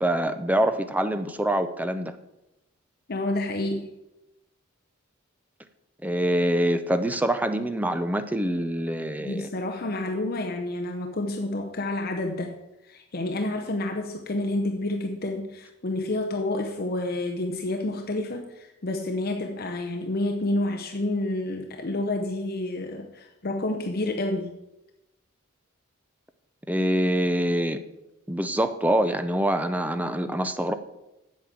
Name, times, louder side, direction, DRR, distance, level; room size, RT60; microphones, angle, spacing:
voice 1, 0.0-2.1 6.0-9.5 26.7-27.8 28.3-30.7, right 1 dB, 5° right, 10 dB, 0.6 m, -25 dB
voice 2, 3.1-3.9 9.2-12.6 12.8-24.5, left 2 dB, 45° left, 3 dB, 0.7 m, -29 dB
8.4 x 7.5 x 7.3 m, 0.95 s
head